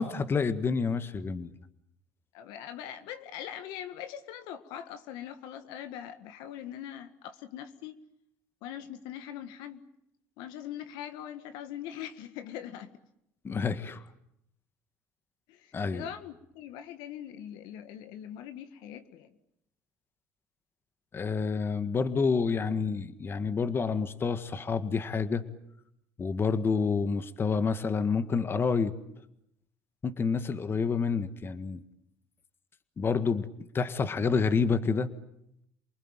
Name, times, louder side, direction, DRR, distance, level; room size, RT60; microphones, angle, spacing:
voice 1, 0.0-1.5 13.4-14.0 15.7-16.1 21.1-25.4 26.2-28.9 30.0-31.8 33.0-33.5 33.7-35.1, left 5 dB, 30° left, 1.7 m, -28 dB
voice 2, 2.3-8.0 8.6-9.8 10.4-13.0 15.5-19.3, left 10 dB, 75° left, 1.8 m, -42 dB
28.5 x 20.5 x 9.1 m
supercardioid pair, 90°, 7 cm